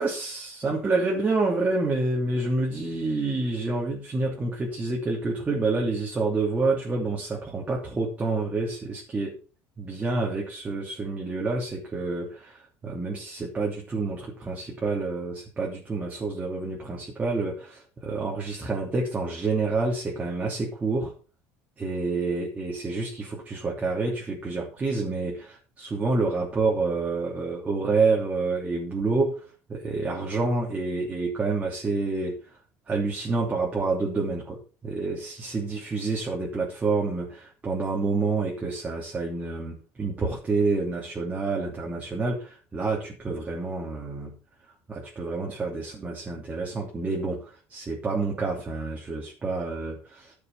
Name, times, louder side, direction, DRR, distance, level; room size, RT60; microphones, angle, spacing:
voice 1, 0.0-9.4 9.8-21.1 21.8-29.4 29.7-32.4 32.9-44.3 44.9-50.3, right 3 dB, 20° right, -2 dB, 3.0 m, -28 dB
11.5 x 6.8 x 5.9 m, 0.35 s
cardioid pair, 125°, 6 cm